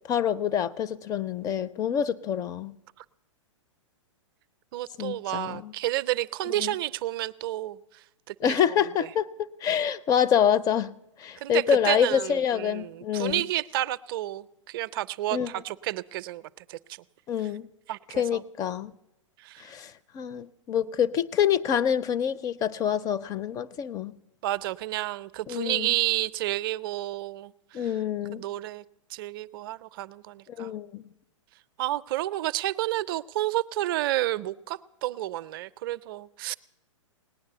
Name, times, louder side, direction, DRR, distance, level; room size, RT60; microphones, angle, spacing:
voice 1, 0.1-2.7 5.0-5.7 6.5-6.7 8.4-9.3 9.6-10.9 11.2-13.4 15.3-15.5 17.3-17.7 18.1-18.9 19.6-24.1 25.5-25.9 27.7-28.4 30.6-31.0, left 9 dB, 20° left, 15 dB, 0.4 m, -26 dB
voice 2, 4.7-7.8 8.3-8.8 11.4-17.0 17.9-18.4 19.4-19.6 24.4-27.8 28.3-28.8 29.1-30.7 31.8-36.5, right 15 dB, 45° right, 15 dB, 0.5 m, -30 dB
18.5 x 9.7 x 6.7 m, 0.91 s
hypercardioid pair, 120°, 17 cm